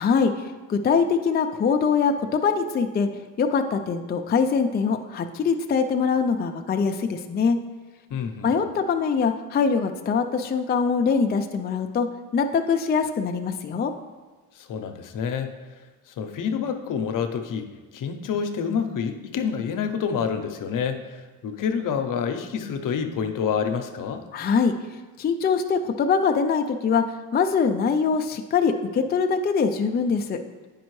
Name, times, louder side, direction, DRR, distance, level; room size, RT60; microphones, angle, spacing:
voice 1, 0.0-3.1 3.4-7.6 8.4-12.1 12.3-13.9 24.3-24.7 25.2-27.1 27.3-30.4, left 5 dB, 25° left, 5 dB, 0.4 m, -23 dB
voice 2, 8.1-8.5 14.6-15.5 16.2-17.7 17.9-21.0 21.4-24.2, left 7 dB, 60° left, 7 dB, 0.7 m, -27 dB
9.1 x 5.2 x 3.1 m, 1.3 s
cardioid pair, 90°, 36 cm